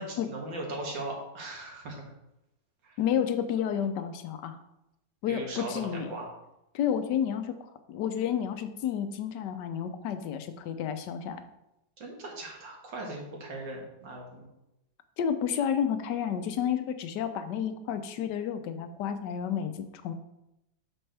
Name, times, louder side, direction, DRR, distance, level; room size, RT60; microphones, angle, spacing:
voice 1, 0.0-2.1 2.8-3.0 5.3-6.3 12.0-14.5, right 2 dB, 80° right, -1 dB, 2.4 m, -39 dB
voice 2, 3.0-4.6 5.2-6.1 6.7-7.6 7.9-11.5 15.2-20.1, left 8 dB, 75° left, 9 dB, 1.3 m, -30 dB
8.6 x 6.4 x 3.4 m, 0.88 s
omnidirectional pair, 2.0 m